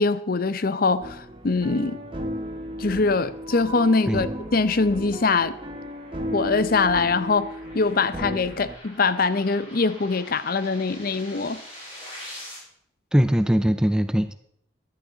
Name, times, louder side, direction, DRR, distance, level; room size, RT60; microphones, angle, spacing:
voice 1, 0.0-2.0 2.8-5.6 6.3-11.6, left 4 dB, 50° left, 0.7 m, -23 dB
sound 1, 1.0-8.7, equal, 30° right, 1.5 m, -35 dB
sound 2, 3.7-12.6, equal, 30° left, 5.7 m, -45 dB
voice 2, 13.1-14.3, equal, 5° right, 0.4 m, -21 dB
14.5 x 11.5 x 4.0 m
head